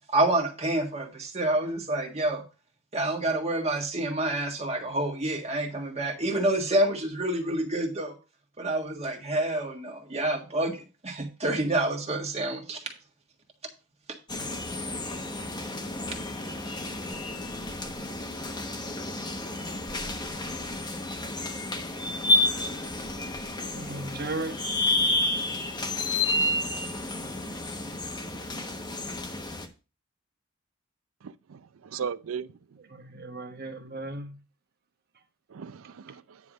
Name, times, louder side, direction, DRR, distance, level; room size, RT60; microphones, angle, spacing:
voice 1, 0.1-2.4 2.9-8.1 8.6-12.8, right 1 dB, 30° right, 1.7 m, -28 dB
sound 1, 14.3-29.7, left 2 dB, 20° left, 1.1 m, -30 dB
voice 2, 23.7-24.6 32.9-34.4, right 2 dB, 50° right, 1.1 m, -36 dB
voice 3, 31.2-32.6 33.1-33.4 33.8-33.9 35.5-36.4, right 6 dB, 85° right, 0.5 m, -38 dB
9.6 x 3.5 x 6.2 m
head